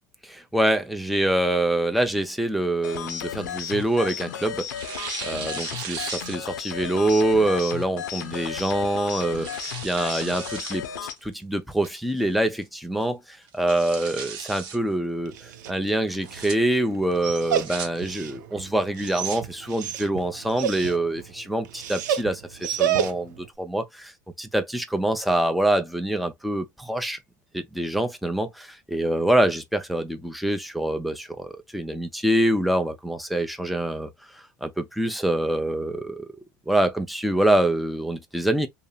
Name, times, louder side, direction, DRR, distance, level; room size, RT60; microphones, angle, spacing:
voice 1, 0.2-4.7 5.2-10.9 11.2-24.1 24.4-27.2 27.5-36.3 36.7-38.7, right 1 dB, ahead, 0.6 m, -25 dB
sound 1, 2.8-11.2, left 8 dB, 80° left, 0.5 m, -34 dB
Tearing, 2.9-4.2 4.7-6.7 7.1-7.2 8.2-8.5 9.0-10.8 11.2-11.3 11.8-12.3 12.6-12.7 13.0-13.1 13.5-14.8 16.1-16.5 17.3-17.9 18.9-19.4, right 6 dB, 55° right, 0.8 m, -37 dB
Dog, 15.2-23.5, right 9 dB, 80° right, 0.4 m, -31 dB
2.7 x 2.0 x 2.3 m
hypercardioid pair, 80°, 10 cm